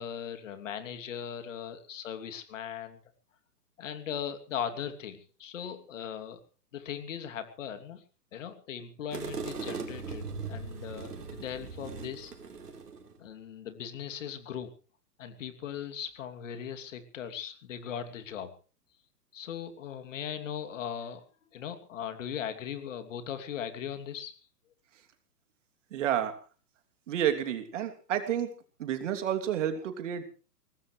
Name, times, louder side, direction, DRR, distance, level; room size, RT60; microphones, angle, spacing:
voice 1, 0.0-3.0 3.8-6.4 6.7-8.0 8.3-12.3 13.2-14.7 15.2-18.5 19.3-21.2 21.5-24.3, left 8 dB, 50° left, 8 dB, 2.9 m, -39 dB
sound 1, 9.1-13.2, right 4 dB, 75° right, 4.1 m, -39 dB
voice 2, 25.9-26.4 27.1-28.5 28.8-30.2, right 10 dB, 50° right, 6 dB, 3.0 m, -30 dB
22.5 x 19.0 x 3.3 m, 0.37 s
figure-of-eight pair, 125°, 48 cm